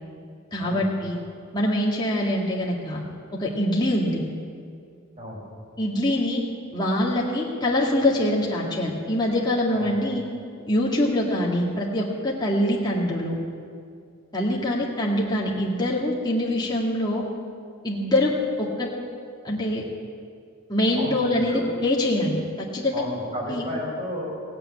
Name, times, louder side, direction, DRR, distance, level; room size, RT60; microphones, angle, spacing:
voice 1, 0.5-1.2 1.5-3.0 3.4-4.2 5.8-6.4 6.7-10.2 10.7-13.4 14.3-17.2 17.8-18.9 19.4-19.8 20.7-23.0 23.5-23.7, left 1 dB, 20° left, -4 dB, 2.0 m, -24 dB
voice 2, 20.9-21.6 22.9-24.5, equal, 35° right, -4 dB, 5.2 m, -33 dB
17.0 x 8.9 x 8.9 m, 2.2 s
head